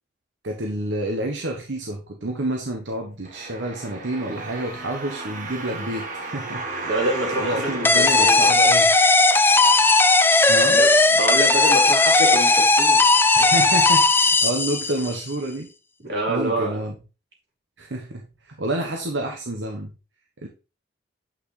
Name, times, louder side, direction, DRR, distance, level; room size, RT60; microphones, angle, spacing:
voice 1, 0.4-6.7 7.4-8.9 10.5-10.8 13.3-15.7 16.3-16.9 17.8-19.9 20.4-20.5, right 1 dB, 85° right, 1.1 m, -29 dB
sound 1, 3.2-9.2 9.8-9.9, right 2 dB, 45° right, 1.5 m, -34 dB
voice 2, 6.8-8.5 10.8-13.0 16.0-16.8, right 1 dB, 65° right, 3.8 m, -27 dB
sound 2, 7.8-15.2, left 3 dB, 10° left, 0.4 m, -17 dB
8.8 x 5.9 x 3.3 m
head